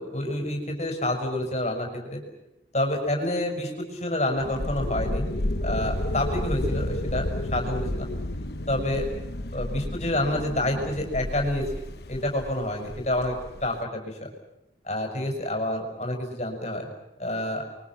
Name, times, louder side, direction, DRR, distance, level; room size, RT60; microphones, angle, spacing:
voice 1, 0.0-2.2 2.7-5.3 5.6-7.2 7.5-8.1 8.7-9.1 9.5-11.8 12.1-13.4 13.6-14.3 14.8-16.9 17.2-17.6, left 1 dB, 35° left, 2 dB, 5.9 m, -28 dB
sound 1, 4.4-13.8, left 1 dB, 60° left, 1.2 m, -31 dB
29.5 x 23.5 x 6.0 m, 0.93 s
head